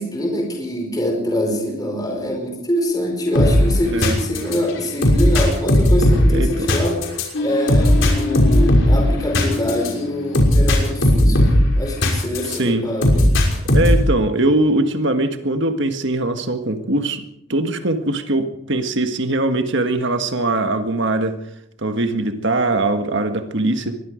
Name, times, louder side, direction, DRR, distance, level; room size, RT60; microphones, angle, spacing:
voice 1, 0.0-7.0 7.4-11.4 11.8-13.3, left 1 dB, 20° left, 1 dB, 5.1 m, -24 dB
sound 1, 3.3-12.6 13.0-14.1, left 1 dB, 60° left, 6.0 m, -16 dB
voice 2, 12.4-12.9 13.7-17.2 17.5-21.4 21.8-24.0, right 2 dB, 55° right, 7 dB, 1.6 m, -21 dB
24.0 x 21.0 x 5.1 m, 0.78 s
head